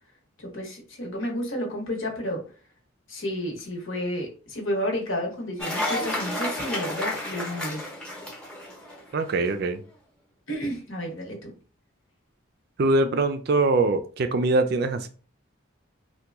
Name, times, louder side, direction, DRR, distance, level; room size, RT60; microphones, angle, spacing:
voice 1, 0.4-2.4 3.1-7.8 10.5-11.5, equal, 70° left, 1.1 m, -31 dB
Cheering / Applause, 5.6-9.3, left 1 dB, 5° left, 0.8 m, -31 dB
voice 2, 9.1-9.8 12.8-15.1, right 2 dB, 50° right, 0.3 m, -23 dB
2.9 x 2.2 x 3.4 m
head